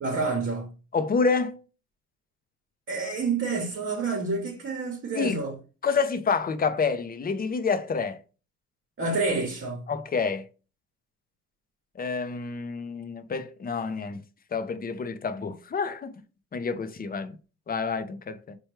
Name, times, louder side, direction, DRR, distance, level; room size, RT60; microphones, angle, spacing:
voice 1, 0.0-0.7 2.9-5.6 9.0-9.9, right 3 dB, 40° right, 0.9 m, -28 dB
voice 2, 0.9-1.6 5.1-5.4 5.8-8.2 9.9-10.5 12.0-14.2 14.5-16.1 16.5-17.3 17.7-18.6, left 5 dB, 30° left, 0.5 m, -28 dB
4.3 x 2.3 x 3.1 m
cardioid pair, 90°, 30 cm